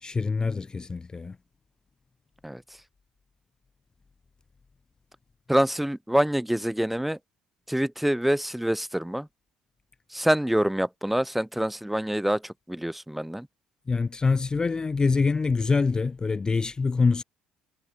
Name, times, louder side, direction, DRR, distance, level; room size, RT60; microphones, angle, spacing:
voice 1, 0.0-1.4 13.9-17.2, left 4 dB, 25° left, 0.4 m, -25 dB
voice 2, 5.5-7.2 7.7-9.3 10.1-13.5, right 1 dB, 5° right, 0.7 m, -26 dB
hypercardioid pair, 60°, 3 cm